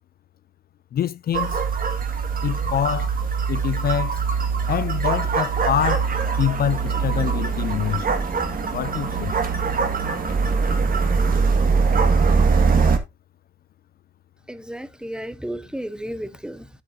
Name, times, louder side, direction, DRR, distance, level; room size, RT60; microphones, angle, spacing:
voice 1, 0.9-1.6 2.4-3.2 3.5-4.2 4.7-8.1 8.7-9.3, left 10 dB, 50° left, 0.5 m, -25 dB
sound 1, 1.3-13.0, right 5 dB, 45° right, 1.9 m, -22 dB
voice 2, 14.5-16.7, equal, 5° right, 0.8 m, -33 dB
9.7 x 8.7 x 2.7 m
cardioid pair, 90°, 20 cm